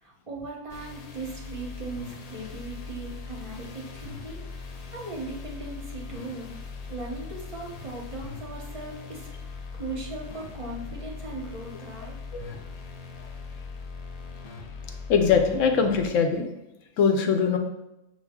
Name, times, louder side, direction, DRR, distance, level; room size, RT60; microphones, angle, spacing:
voice 1, 0.0-6.5 6.9-12.2, right 2 dB, 30° right, -2 dB, 0.8 m, -38 dB
sound 1, 0.7-16.1, left 4 dB, 65° left, 0.3 m, -40 dB
voice 2, 15.1-16.5 17.0-17.6, left 6 dB, 90° left, 5 dB, 1.0 m, -22 dB
6.1 x 2.4 x 3.5 m, 0.90 s
omnidirectional pair, 1.3 m